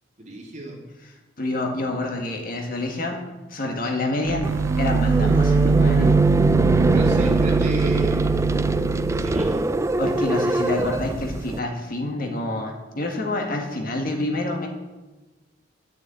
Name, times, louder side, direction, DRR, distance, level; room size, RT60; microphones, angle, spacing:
voice 1, 0.2-0.8 6.9-8.4 9.1-9.6 10.3-10.7, right 1 dB, 40° right, -2 dB, 3.1 m, -34 dB
voice 2, 1.4-3.2 3.5-6.1 10.0-14.7, left 2 dB, 50° left, 2 dB, 1.9 m, -27 dB
sound 1, 4.2-9.6, right 6 dB, 90° right, 0.5 m, -22 dB
sound 2, 4.4-11.6, right 1 dB, 15° right, 0.4 m, -23 dB
11.5 x 6.7 x 9.0 m, 1.2 s
head